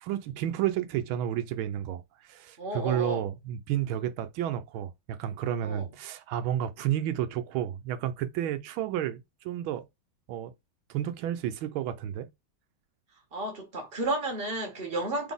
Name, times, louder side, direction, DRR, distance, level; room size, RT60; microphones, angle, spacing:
voice 1, 0.0-9.9 10.3-10.5 10.9-12.3, right 11 dB, 90° right, 1.4 m, -31 dB
voice 2, 2.6-3.2 5.6-5.9 13.3-15.3, right 2 dB, 30° right, 1.7 m, -32 dB
4.0 x 3.8 x 3.5 m
omnidirectional pair, 2.2 m